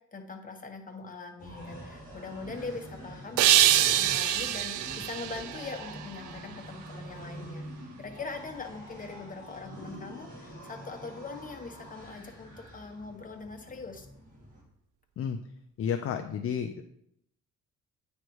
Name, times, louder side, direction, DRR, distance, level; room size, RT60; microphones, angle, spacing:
voice 1, 0.1-7.6 8.0-14.1, left 3 dB, 25° left, 3 dB, 1.1 m, -42 dB
sound 1, 1.4-14.6, equal, 25° right, 2.6 m, -46 dB
sound 2, 3.4-6.5, right 12 dB, 90° right, 0.4 m, -25 dB
voice 2, 15.8-16.8, left 7 dB, 50° left, 7 dB, 0.5 m, -31 dB
8.8 x 3.3 x 4.6 m, 0.74 s
cardioid pair, 90°, 30 cm